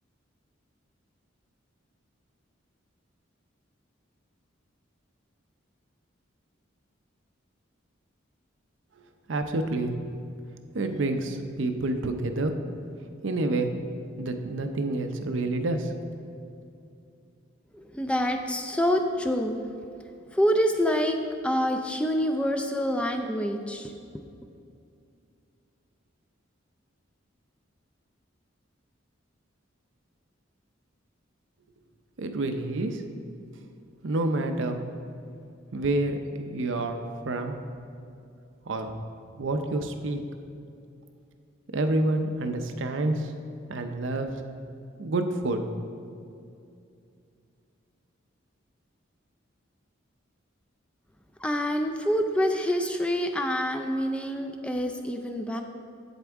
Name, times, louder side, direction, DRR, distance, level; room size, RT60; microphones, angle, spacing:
voice 1, 9.3-9.9 10.7-12.6 13.2-13.7 14.2-15.9 32.2-33.0 34.0-34.8 35.7-37.6 38.7-39.0 39.4-40.2 41.7-43.3 43.7-44.3 45.0-45.7, right 2 dB, 65° right, 6 dB, 0.6 m, -28 dB
voice 2, 17.7-19.7 20.3-24.2 51.4-55.6, equal, 5° left, 4 dB, 0.3 m, -27 dB
7.9 x 7.9 x 3.5 m, 2.5 s
head